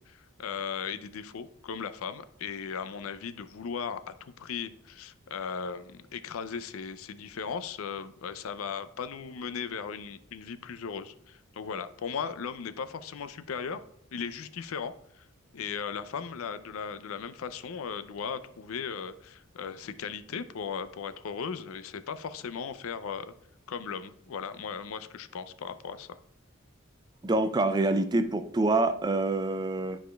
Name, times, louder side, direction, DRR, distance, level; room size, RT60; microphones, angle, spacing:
voice 1, 0.1-13.8 14.1-15.3 15.5-23.3 23.7-26.2, left 6 dB, 80° left, 12 dB, 0.4 m, -37 dB
voice 2, 27.2-30.0, right 2 dB, 20° right, 10 dB, 0.3 m, -26 dB
11.0 x 4.9 x 2.3 m, 0.71 s
head